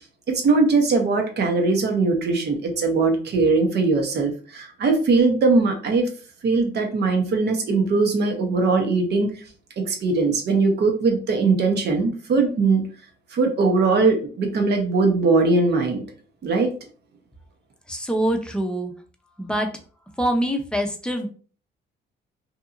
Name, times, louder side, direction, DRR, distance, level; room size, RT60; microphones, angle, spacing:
voice 1, 0.3-6.1 6.4-9.4 9.8-12.8 13.3-16.0 16.4-16.7, right 3 dB, 55° right, 3 dB, 0.8 m, -20 dB
voice 2, 17.9-18.9 19.4-19.8 20.2-21.3, right 1 dB, 5° left, 3 dB, 0.6 m, -24 dB
2.8 x 2.6 x 2.4 m, 0.39 s
cardioid pair, 90°, 20 cm